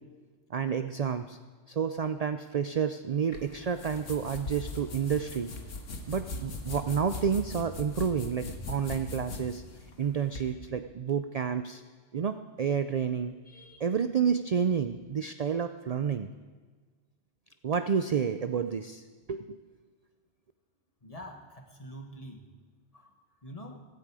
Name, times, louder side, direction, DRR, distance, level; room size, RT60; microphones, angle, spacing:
voice 1, 0.5-1.4 1.7-5.5 6.1-9.6 10.0-11.8 12.1-16.3 17.6-19.6, right 7 dB, 55° right, 9 dB, 0.4 m, -30 dB
sound 1, 3.3-10.5, left 2 dB, 80° left, 1.7 m, -40 dB
voice 2, 21.0-22.4 22.9-23.1 23.4-23.8, equal, 30° left, 3 dB, 1.6 m, -45 dB
15.5 x 15.5 x 4.9 m, 1.4 s
omnidirectional pair, 1.3 m